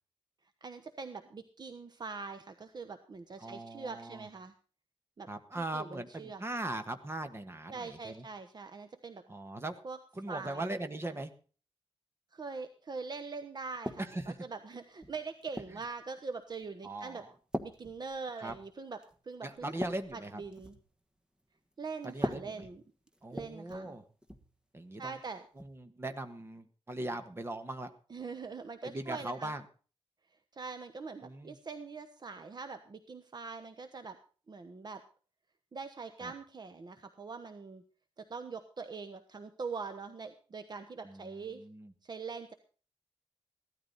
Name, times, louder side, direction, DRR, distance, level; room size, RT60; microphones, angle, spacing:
voice 1, 0.6-4.5 5.2-5.3 5.7-6.4 7.7-9.2 9.8-10.0 10.3-10.7 12.3-14.0 14.5-17.2 17.6-19.0 19.2-19.8 20.1-20.8 21.8-22.8 23.3-24.0 25.0-25.4 28.1-29.5 30.5-34.2 34.5-35.0 35.7-37.8 38.2-41.6 42.0-42.5, right 4 dB, 45° right, 8 dB, 1.0 m, -43 dB
voice 2, 3.4-4.3 5.3-8.2 9.3-9.8 10.1-11.3 14.0-14.4 16.8-17.3 18.4-18.5 19.4-20.4 22.0-22.7 23.2-24.0 24.7-25.2 25.5-27.9 28.8-29.6 31.2-31.6 36.2-36.3 41.0-41.9, right 2 dB, 25° right, 8 dB, 1.5 m, -40 dB
sound 1, 13.8-14.4 15.0-15.9 16.5-16.8 17.5-18.7 19.0-19.2 19.6-20.9 22.1-23.9 24.2-24.5 25.6-25.8, equal, 10° right, 1.3 m, -41 dB
16.0 x 13.0 x 4.1 m, 0.38 s
wide cardioid pair, 150°, 10 cm